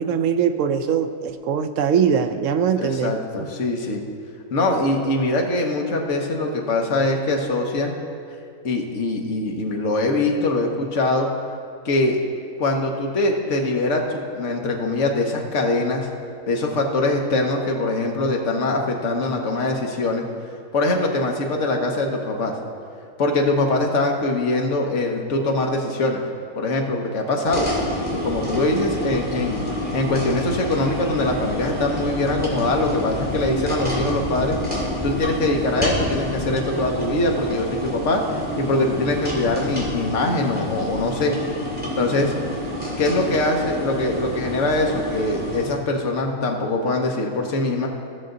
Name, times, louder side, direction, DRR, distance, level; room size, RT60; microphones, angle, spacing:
voice 1, 0.0-3.1 3.4-3.5 43.1-43.4, right 7 dB, 70° right, 8 dB, 0.9 m, -22 dB
voice 2, 2.8-4.0 4.5-7.9 8.6-11.3 11.8-12.2 12.6-16.1 16.5-20.2 20.7-22.5 23.2-26.2 26.6-27.7 28.2-34.6 35.0-41.3 42.0-42.3 43.0-47.9, left 2 dB, 55° left, 1 dB, 1.4 m, -23 dB
sound 1, 27.5-45.6, equal, 5° right, 2.2 m, -28 dB
16.0 x 6.6 x 3.9 m, 2.3 s
omnidirectional pair, 1.5 m